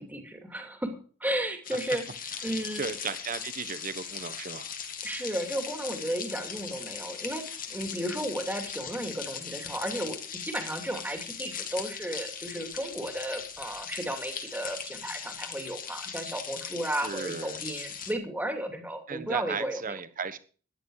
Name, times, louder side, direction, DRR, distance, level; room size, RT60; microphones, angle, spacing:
voice 1, 0.0-2.8 5.0-20.0, right 1 dB, 10° right, 4 dB, 2.6 m, -34 dB
sound 1, 1.6-18.1, left 7 dB, 45° left, 2.1 m, -39 dB
voice 2, 2.7-4.7 17.0-17.6 19.1-20.4, right 5 dB, 40° right, 12 dB, 1.2 m, -35 dB
14.0 x 10.5 x 4.9 m, 0.40 s
head